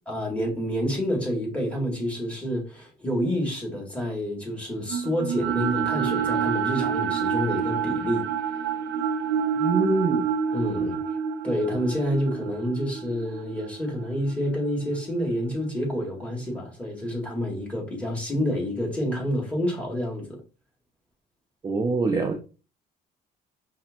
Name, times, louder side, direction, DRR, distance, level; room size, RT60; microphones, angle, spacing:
voice 1, 0.1-8.3 10.5-11.0 11.4-20.4, equal, 5° left, 1.7 m, -28 dB
sound 1, 4.9-15.1, right 7 dB, 85° right, 0.6 m, -28 dB
voice 2, 9.6-10.3 21.6-22.4, right 3 dB, 25° right, 0.5 m, -24 dB
5.3 x 2.7 x 2.5 m
cardioid pair, 110°, 17 cm